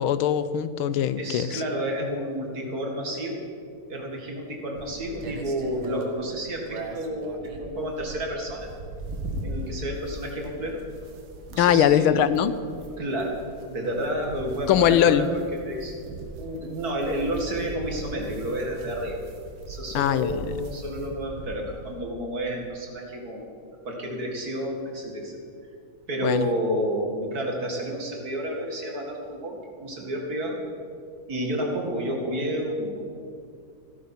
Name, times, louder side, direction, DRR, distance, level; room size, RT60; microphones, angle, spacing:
voice 1, 0.0-1.6 11.6-12.5 14.7-15.3 19.9-20.4 26.2-26.5, left 10 dB, 85° left, 14 dB, 1.5 m, -21 dB
voice 2, 1.2-3.4 3.9-8.7 9.4-10.8 11.5-12.2 13.0-13.4 13.7-15.3 15.6-16.0 16.4-19.3 19.7-23.5 23.8-25.4 26.1-30.6 31.3-33.1, right 1 dB, 45° right, 1 dB, 2.5 m, -30 dB
sound 1, 4.8-22.0, right 2 dB, 75° right, 2.2 m, -39 dB
16.0 x 13.0 x 5.9 m, 2.4 s
omnidirectional pair, 2.3 m